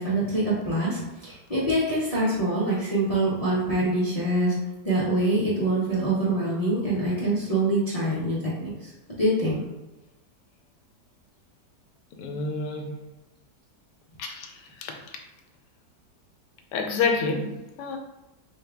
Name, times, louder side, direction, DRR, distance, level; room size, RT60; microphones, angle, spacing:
voice 1, 0.0-4.6 4.8-8.9 9.2-9.6, right 1 dB, 45° left, -9 dB, 0.5 m, -25 dB
voice 2, 12.2-13.0 14.2-15.2 16.7-18.0, left 4 dB, 75° left, 4 dB, 1.2 m, -29 dB
4.1 x 2.3 x 3.4 m, 1.0 s
omnidirectional pair, 1.9 m